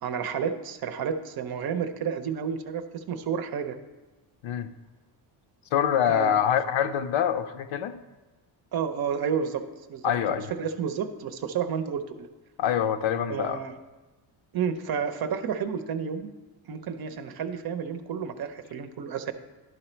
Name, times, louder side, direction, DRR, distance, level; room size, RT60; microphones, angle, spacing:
voice 1, 0.0-3.8 6.1-6.4 8.7-9.6 9.9-12.3 13.3-13.7 14.5-16.3 16.7-19.3, right 7 dB, 50° right, 9 dB, 0.6 m, -31 dB
voice 2, 5.7-8.0 10.0-10.5 12.6-13.6, left 9 dB, 75° left, 9 dB, 0.7 m, -25 dB
11.5 x 4.0 x 4.4 m, 1.2 s
cardioid pair, 125°, 47 cm